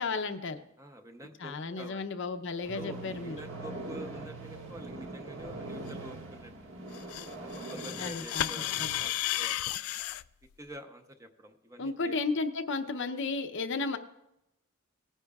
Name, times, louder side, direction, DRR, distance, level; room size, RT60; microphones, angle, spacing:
voice 1, 0.0-0.6 1.4-3.4 8.0-8.5 8.8-8.9 11.8-14.0, left 4 dB, 55° left, 7 dB, 0.7 m, -33 dB
voice 2, 0.8-2.1 2.7-6.5 7.4-9.6 10.6-12.2, equal, 15° right, 6 dB, 0.7 m, -47 dB
sound 1, 2.6-9.0, right 2 dB, 60° right, 1.6 m, -43 dB
sound 2, 2.7-6.9 8.6-9.1, right 4 dB, 75° right, 0.7 m, -47 dB
sound 3, 6.9-10.2, left 14 dB, 75° left, 0.3 m, -33 dB
19.0 x 9.9 x 2.4 m, 0.87 s
head